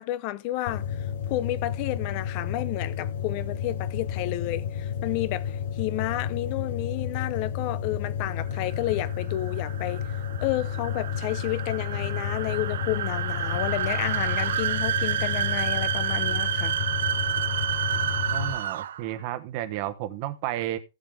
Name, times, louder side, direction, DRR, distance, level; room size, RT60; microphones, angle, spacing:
voice 1, 0.0-10.1 10.4-16.7, left 16 dB, 30° left, 0.7 m, -31 dB
sound 1, 0.7-18.5, left 8 dB, 65° left, 2.7 m, -31 dB
sound 2, 8.5-19.1, right 10 dB, 60° right, 0.6 m, -29 dB
voice 2, 18.3-20.8, right 14 dB, 30° right, 1.1 m, -32 dB
15.5 x 7.4 x 3.7 m
supercardioid pair, 180°, 0 cm